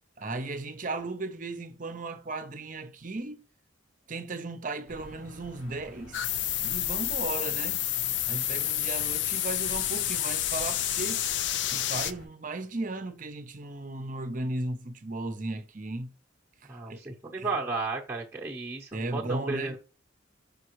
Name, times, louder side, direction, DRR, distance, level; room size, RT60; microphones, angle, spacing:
voice 1, 0.2-3.4 4.1-6.3 6.6-7.9 8.3-11.3 11.7-16.1 16.6-17.5 18.9-19.8, right 2 dB, 40° right, 0.7 m, -36 dB
sound 1, 4.9-12.3, right 1 dB, 85° left, 1.9 m, -47 dB
sound 2, 6.1-12.1, left 12 dB, 60° left, 0.4 m, -29 dB
voice 2, 16.7-19.8, right 3 dB, 15° right, 0.9 m, -34 dB
6.0 x 5.1 x 3.1 m
head